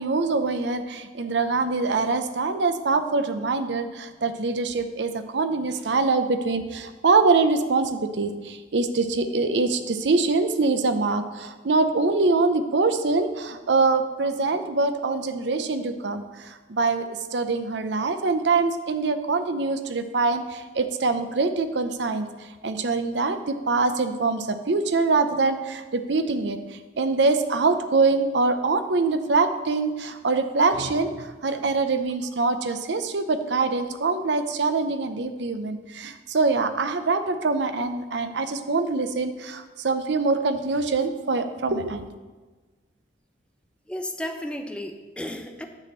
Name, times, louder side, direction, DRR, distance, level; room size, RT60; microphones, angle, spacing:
voice 1, 0.0-22.3 22.6-26.6 27.0-42.1, right 3 dB, 75° right, 9 dB, 0.6 m, -24 dB
voice 2, 43.9-45.7, left 1 dB, 5° left, 5 dB, 0.6 m, -33 dB
9.8 x 4.2 x 7.3 m, 1.3 s
head